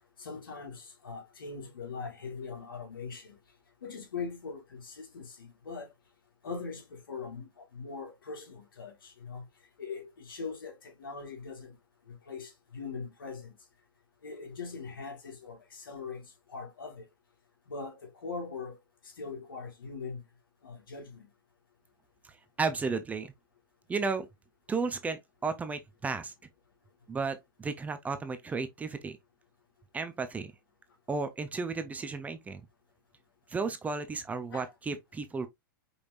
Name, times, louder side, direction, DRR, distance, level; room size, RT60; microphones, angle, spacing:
voice 1, 0.2-3.4 3.8-5.9 6.4-9.5 9.8-11.8 12.1-13.5 14.2-16.2 16.5-17.1 17.7-18.8 19.2-20.2 20.6-21.3 34.5-34.7, left 4 dB, 90° left, 1.9 m, -41 dB
voice 2, 22.6-23.3 23.9-24.3 24.7-26.3 27.1-29.2 29.9-30.5 31.1-32.6 33.5-35.5, right 4 dB, 15° right, 0.7 m, -33 dB
5.3 x 3.2 x 2.6 m
hypercardioid pair, 125°, 11 cm